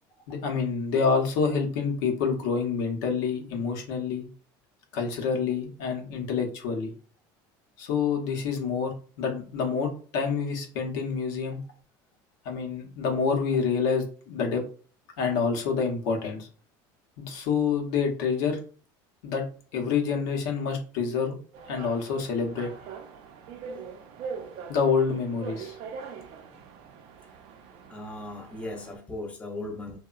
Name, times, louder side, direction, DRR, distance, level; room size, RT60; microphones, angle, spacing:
voice 1, 0.3-4.3 4.9-6.9 7.8-11.6 12.4-14.6 15.2-16.5 17.2-18.6 19.2-19.4 19.7-21.4 21.7-22.7 24.7-25.8, left 5 dB, 80° left, 2 dB, 0.7 m, -27 dB
sound 1, 21.5-29.0, right 5 dB, 60° right, 0.5 m, -42 dB
voice 2, 27.9-30.0, left 2 dB, 10° left, 2 dB, 0.5 m, -37 dB
2.9 x 2.1 x 2.3 m, 0.40 s
cardioid pair, 135°, 11 cm